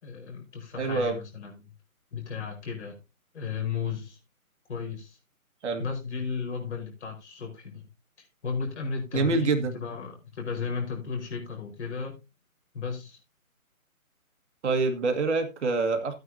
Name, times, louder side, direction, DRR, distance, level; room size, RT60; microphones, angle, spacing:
voice 1, 0.0-1.7 2.1-3.0 3.3-4.2 4.7-5.2 5.8-7.9 8.2-12.2 12.7-13.2, left 5 dB, 50° left, 2 dB, 5.0 m, -34 dB
voice 2, 0.8-1.2 5.6-5.8 9.1-9.8 14.6-16.2, right 3 dB, 50° right, 5 dB, 1.9 m, -26 dB
13.5 x 9.3 x 2.8 m, 0.25 s
figure-of-eight pair, 150°, 43 cm